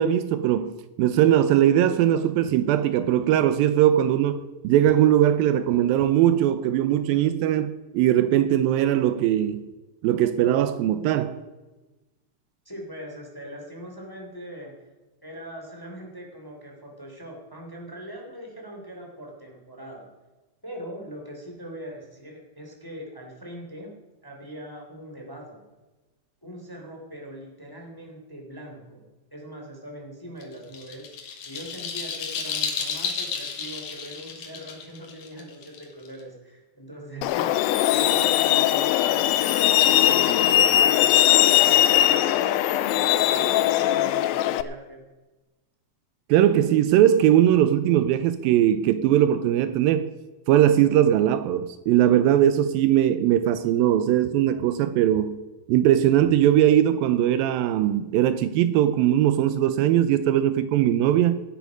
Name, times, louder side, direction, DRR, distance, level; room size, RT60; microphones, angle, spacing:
voice 1, 0.0-9.7 10.0-11.4 46.3-50.1 50.5-55.4 55.7-61.4, right 11 dB, 85° right, 2.3 m, -20 dB
voice 2, 12.6-14.7 15.2-20.1 20.6-23.9 24.2-25.6 26.4-29.1 29.3-45.0, equal, 5° left, 2.2 m, -41 dB
sound 1, 30.4-36.2, left 6 dB, 65° left, 2.9 m, -32 dB
Truck, 37.2-44.6, left 13 dB, 80° left, 2.3 m, -20 dB
17.5 x 9.7 x 5.2 m
omnidirectional pair, 4.3 m